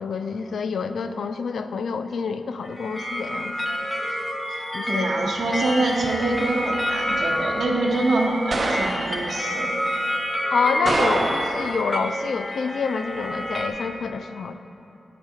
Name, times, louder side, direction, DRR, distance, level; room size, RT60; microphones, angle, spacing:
voice 1, 0.0-3.5 4.1-4.2 4.7-5.1 10.5-14.5, left 5 dB, 70° left, 9 dB, 0.3 m, -27 dB
sound 1, 2.6-13.7, equal, 15° left, 0.6 m, -28 dB
voice 2, 4.5-9.8, right 2 dB, 70° right, 0 dB, 0.9 m, -25 dB
sound 2, 5.2-5.6 6.0-6.3 8.5-9.3 10.8-11.8, right 2 dB, 40° right, 0.6 m, -26 dB
8.7 x 3.6 x 6.2 m, 2.8 s
wide cardioid pair, 160°, 0 cm